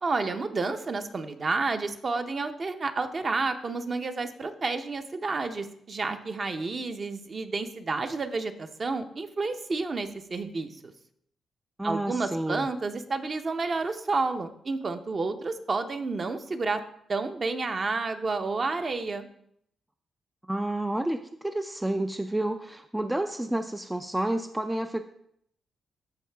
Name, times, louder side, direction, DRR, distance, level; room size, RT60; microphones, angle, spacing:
voice 1, 0.0-10.7 11.8-16.8 17.1-19.3, right 3 dB, 35° right, 7 dB, 0.7 m, -30 dB
voice 2, 11.8-12.7 20.5-25.0, right 1 dB, 10° right, 7 dB, 0.3 m, -30 dB
14.0 x 4.7 x 3.4 m, 0.70 s
cardioid pair, 115°, 0 cm